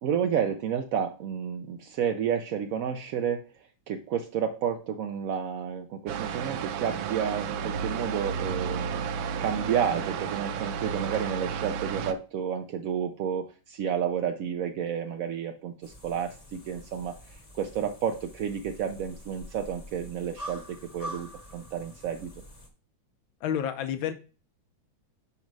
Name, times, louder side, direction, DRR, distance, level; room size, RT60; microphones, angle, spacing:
voice 1, 0.0-8.9 9.4-22.3, right 8 dB, 70° right, 5 dB, 0.8 m, -31 dB
sound 1, 6.1-12.1, right 7 dB, 90° right, 1.4 m, -32 dB
sound 2, 15.8-22.7, equal, 25° left, 0.9 m, -45 dB
voice 2, 23.4-24.1, left 9 dB, 85° left, 9 dB, 1.6 m, -29 dB
5.2 x 4.2 x 6.0 m, 0.35 s
omnidirectional pair, 2.1 m